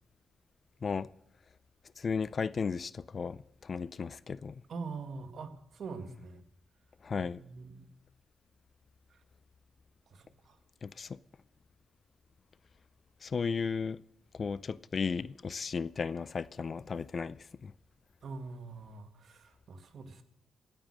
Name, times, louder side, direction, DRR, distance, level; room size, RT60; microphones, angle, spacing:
voice 1, 2.0-4.6 7.0-7.4 10.8-11.2 13.2-14.0 14.3-17.7, left 5 dB, 40° left, 0.4 m, -35 dB
voice 2, 4.7-6.4 7.2-7.9 9.1-9.2 10.1-10.6 18.2-20.2, right 4 dB, 60° right, 1.8 m, -44 dB
17.5 x 8.9 x 6.3 m
cardioid pair, 95°, 0 cm